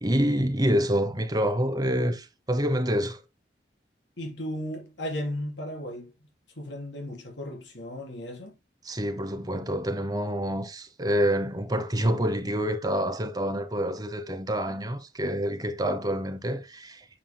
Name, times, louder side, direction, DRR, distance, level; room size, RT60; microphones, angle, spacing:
voice 1, 0.0-3.2 8.8-17.0, equal, 20° right, 0.9 m, -27 dB
voice 2, 4.2-6.1 6.6-8.5, left 1 dB, 80° left, 3.9 m, -35 dB
9.3 x 6.9 x 2.2 m
head